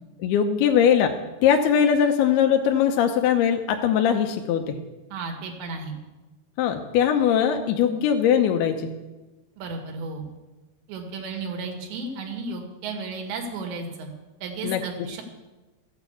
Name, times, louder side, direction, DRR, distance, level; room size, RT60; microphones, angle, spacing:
voice 1, 0.2-1.1 1.4-4.8 6.6-8.9 14.6-14.8, left 8 dB, 80° left, 4 dB, 2.7 m, -21 dB
voice 2, 5.1-5.9 9.6-10.2 10.9-14.1 14.4-15.2, right 3 dB, 90° right, 2 dB, 4.3 m, -33 dB
14.0 x 9.1 x 8.2 m, 1.1 s
omnidirectional pair, 4.9 m